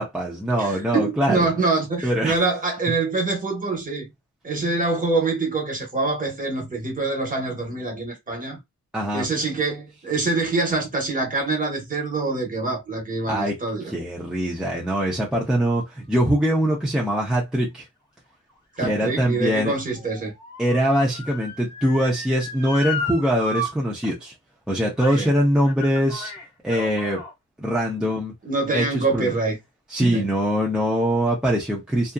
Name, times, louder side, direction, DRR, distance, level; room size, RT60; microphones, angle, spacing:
voice 1, 0.0-1.5 2.0-2.4 8.9-9.3 13.3-13.5 13.9-17.9 18.8-19.7 20.6-24.3 24.7-26.3 26.6-27.2 27.6-28.3 28.7-29.3 29.9-32.1, equal, ahead, 0.5 m, -23 dB
voice 2, 0.6-4.1 4.4-8.6 9.1-13.9 18.8-20.3 25.2-25.3 28.4-29.6 30.0-30.3, right 3 dB, 25° right, 1.0 m, -25 dB
Motor vehicle (road) / Siren, 18.5-23.7 24.0-24.1 25.0-25.3 25.6-27.3 28.0-28.1, left 2 dB, 15° left, 1.0 m, -34 dB
2.6 x 2.4 x 2.2 m
wide cardioid pair, 180°, 32 cm